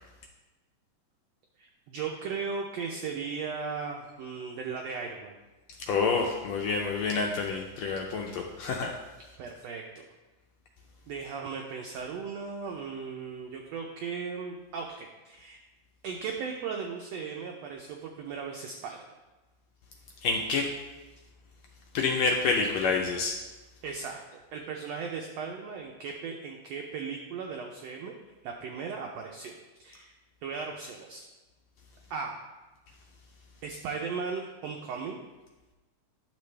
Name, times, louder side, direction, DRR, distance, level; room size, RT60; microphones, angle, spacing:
voice 1, 1.6-5.4 9.4-10.0 11.1-15.6 16.0-19.0 23.8-24.2 24.5-28.1 28.4-29.5 29.8-30.1 30.4-31.3 32.1-32.4 33.6-35.2, right 5 dB, 90° right, 2 dB, 1.4 m, -37 dB
voice 2, 5.9-8.9 20.2-20.6 21.9-23.3, left 4 dB, 80° left, 0 dB, 1.6 m, -28 dB
10.5 x 6.7 x 3.2 m, 1.2 s
omnidirectional pair, 3.7 m